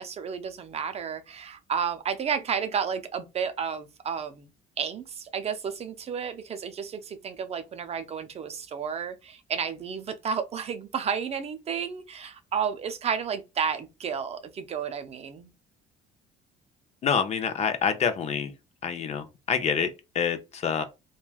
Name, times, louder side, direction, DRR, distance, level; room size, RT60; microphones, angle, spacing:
voice 1, 0.0-4.5 4.8-15.5, right 7 dB, 40° right, 0.4 m, -32 dB
voice 2, 17.0-18.5 18.8-20.8, left 7 dB, 40° left, 0.5 m, -27 dB
3.1 x 2.2 x 2.3 m
cardioid pair, 110°, 17 cm